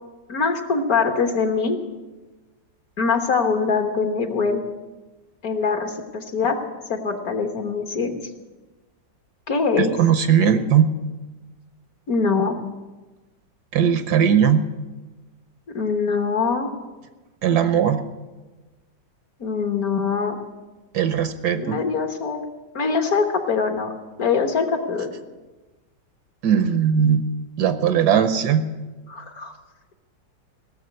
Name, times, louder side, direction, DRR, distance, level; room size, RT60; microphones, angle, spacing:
voice 1, 0.3-1.8 3.0-4.6 5.4-6.6 6.9-8.1 9.5-10.0 12.1-12.6 15.7-16.7 19.4-20.4 21.6-22.4 22.7-23.9 24.2-25.1 29.1-29.5, left 5 dB, 55° left, 6 dB, 1.6 m, -23 dB
voice 2, 9.8-11.0 13.7-14.7 17.4-18.0 20.9-21.8 26.4-27.3 27.6-28.7, right 8 dB, 65° right, 10 dB, 1.3 m, -19 dB
17.5 x 7.1 x 9.5 m, 1.2 s
omnidirectional pair, 2.0 m